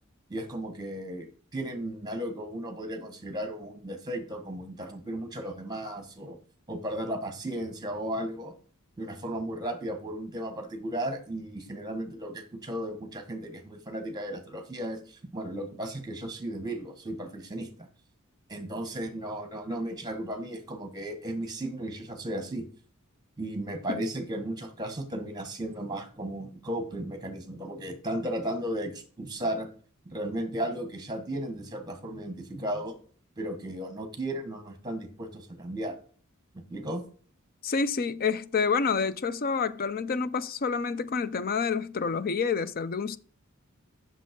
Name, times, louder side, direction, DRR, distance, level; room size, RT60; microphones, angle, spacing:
voice 1, 0.3-1.3 1.5-6.4 6.7-8.6 9.0-17.9 18.5-22.7 23.4-29.7 30.0-32.9 33.4-35.9 36.5-37.0, right 1 dB, 20° right, 1.5 m, -35 dB
voice 2, 37.6-43.2, left 5 dB, 45° left, 0.5 m, -28 dB
7.5 x 6.5 x 5.2 m
head